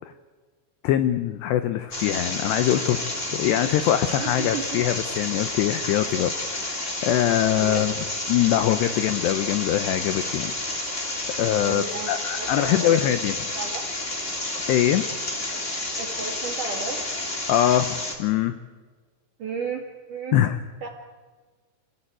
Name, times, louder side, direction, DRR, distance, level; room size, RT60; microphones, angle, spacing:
voice 1, 0.8-3.0 3.3-7.9 8.3-10.5 11.4-13.3 14.7-15.0 17.5-18.6 20.3-20.6, left 11 dB, 80° left, 10 dB, 2.4 m, -23 dB
sound 1, 1.9-18.2, left 2 dB, 20° left, 2.0 m, -30 dB
voice 2, 4.2-4.8 7.5-7.9 11.6-13.2 13.5-13.9 16.0-17.0 19.4-20.4 20.8-20.9, right 5 dB, 55° right, 2 dB, 2.4 m, -34 dB
27.0 x 17.0 x 9.0 m, 1.4 s
omnidirectional pair, 6.0 m